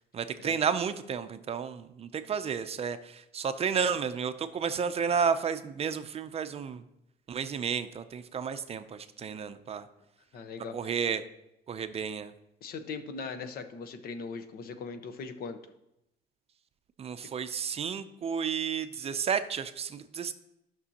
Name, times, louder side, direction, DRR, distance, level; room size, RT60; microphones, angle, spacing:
voice 1, 0.1-6.8 7.3-9.8 10.7-11.2 11.7-12.3 17.0-20.3, right 6 dB, 35° right, 11 dB, 0.5 m, -32 dB
voice 2, 10.3-10.7 12.6-15.6 17.2-17.3, left 4 dB, 60° left, 8 dB, 1.0 m, -40 dB
13.5 x 6.1 x 2.9 m, 0.86 s
cardioid pair, 110°, 17 cm